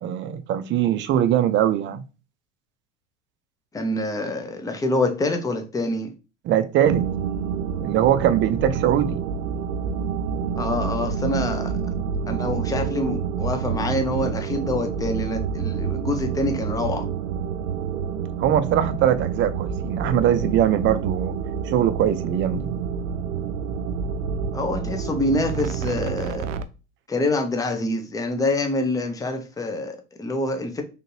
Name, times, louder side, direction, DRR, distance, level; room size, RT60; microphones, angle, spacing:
voice 1, 0.0-2.0 6.5-7.1 7.8-9.2 18.4-21.4 21.6-22.7, right 10 dB, 30° right, 0.5 m, -21 dB
voice 2, 3.7-6.1 10.6-11.8 12.3-17.1 24.5-26.5 27.1-30.8, left 2 dB, 10° left, 0.6 m, -26 dB
sound 1, 6.8-26.6, right 7 dB, 80° right, 0.5 m, -28 dB
3.9 x 3.4 x 2.7 m
hypercardioid pair, 90°, 38 cm